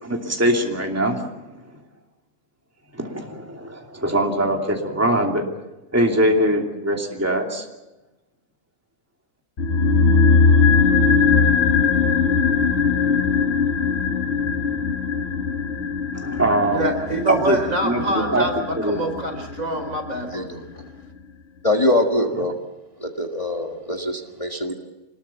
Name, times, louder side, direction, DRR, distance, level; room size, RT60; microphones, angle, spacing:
voice 1, 0.0-1.3 2.9-5.4 5.9-7.7 16.2-16.9 17.3-17.6 17.8-18.5 18.7-19.0, right 1 dB, 10° right, 1 dB, 2.8 m, -22 dB
sound 1, 9.6-19.8 20.1-20.2, left 5 dB, 45° left, 1.6 m, -20 dB
voice 2, 16.7-20.5, right 1 dB, 60° right, 4 dB, 4.9 m, -25 dB
voice 3, 20.3-20.9 21.6-22.5 23.0-24.7, left 1 dB, 20° left, 2 dB, 1.7 m, -23 dB
26.0 x 21.0 x 7.2 m, 1.0 s
omnidirectional pair, 1.6 m